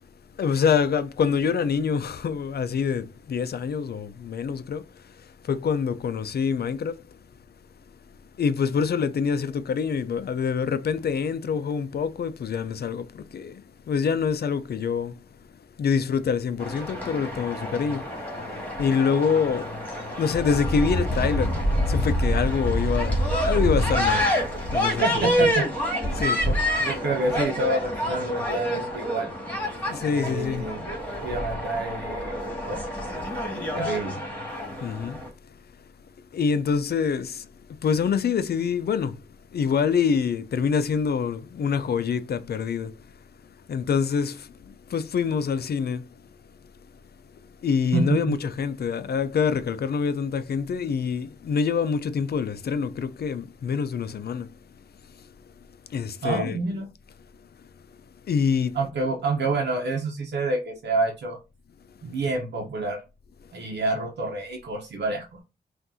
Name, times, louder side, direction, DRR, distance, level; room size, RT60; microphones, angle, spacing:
voice 1, 0.4-7.0 8.4-15.2 15.8-19.8 20.2-24.3 24.7-25.5 26.1-26.5 29.8-30.7 34.8-35.2 36.3-39.3 39.5-43.0 43.7-46.1 47.6-54.5 55.1-55.3 55.9-56.6 58.3-58.8, left 6 dB, 70° left, 0.5 m, -26 dB
sound 1, 16.6-35.3, equal, 10° left, 2.1 m, -27 dB
voice 2, 25.0-25.7 26.5-29.3 30.1-30.9 31.2-32.8 33.7-34.2 47.9-48.4 56.2-56.9 58.7-61.4 62.0-63.0 63.5-65.4, right 3 dB, 90° right, 0.9 m, -28 dB
5.9 x 2.6 x 2.7 m
cardioid pair, 70°, 17 cm